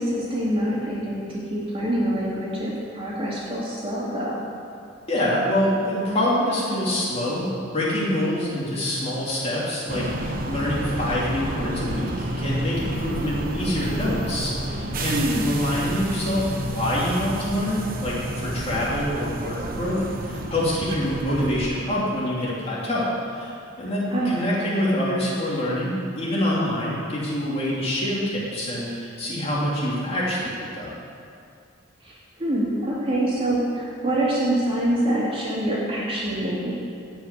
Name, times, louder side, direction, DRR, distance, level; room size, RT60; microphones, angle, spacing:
voice 1, 0.0-4.4 15.1-15.5 24.1-24.5 32.0-32.1 32.4-36.7, right 1 dB, 30° right, -6 dB, 2.8 m, -25 dB
voice 2, 5.1-30.9, left 1 dB, 30° left, -7 dB, 3.0 m, -26 dB
sound 1, 9.9-21.7, right 1 dB, 45° right, 1.0 m, -30 dB
16.5 x 5.7 x 8.3 m, 2.5 s
head